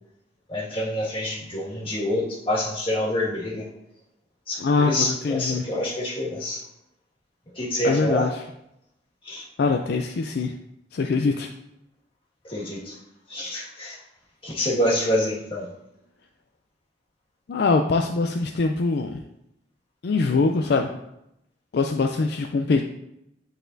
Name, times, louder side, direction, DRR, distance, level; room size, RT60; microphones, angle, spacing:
voice 1, 0.5-3.7 4.5-6.6 7.6-8.3 9.2-9.5 12.4-13.0 13.3-14.0 14.4-15.7, left 1 dB, 30° left, -5 dB, 1.8 m, -27 dB
voice 2, 4.6-5.6 7.8-8.3 9.6-10.5 10.9-11.5 17.5-19.2 20.0-20.9 21.7-22.8, left 4 dB, 60° left, 4 dB, 0.4 m, -23 dB
10.0 x 4.1 x 2.6 m, 0.84 s
head